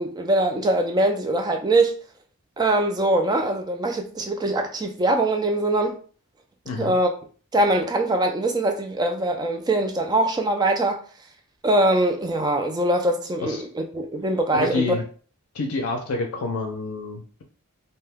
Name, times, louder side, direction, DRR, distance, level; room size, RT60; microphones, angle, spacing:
voice 1, 0.0-2.0 2.6-6.0 6.8-7.1 7.5-11.0 11.6-14.9, right 1 dB, 20° right, 0.3 m, -22 dB
voice 2, 14.5-15.0 15.5-17.4, left 3 dB, 75° left, 0.5 m, -28 dB
2.7 x 2.2 x 3.4 m
head